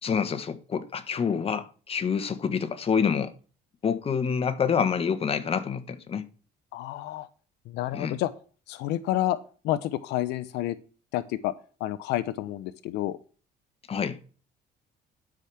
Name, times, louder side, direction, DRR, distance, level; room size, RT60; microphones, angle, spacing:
voice 1, 0.0-3.3 3.8-6.3 7.9-8.2 13.9-14.2, left 6 dB, 35° left, 1.4 m, -27 dB
voice 2, 6.7-7.3 7.7-8.3 8.7-9.4 9.6-10.8 11.1-11.5 11.8-13.2, left 14 dB, 85° left, 0.7 m, -29 dB
12.0 x 5.1 x 5.8 m
cardioid pair, 110°, 17 cm